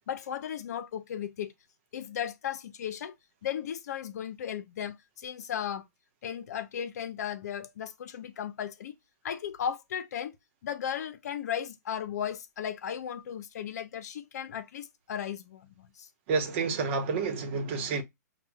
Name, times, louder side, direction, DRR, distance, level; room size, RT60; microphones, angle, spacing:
voice 1, 0.1-1.5 1.9-3.1 3.4-5.9 6.2-9.0 9.2-10.3 10.6-16.1, left 9 dB, 60° left, 0.8 m, -36 dB
voice 2, 16.3-18.0, right 4 dB, 40° right, 1.1 m, -29 dB
6.0 x 2.4 x 2.3 m
hypercardioid pair, 150°, 10 cm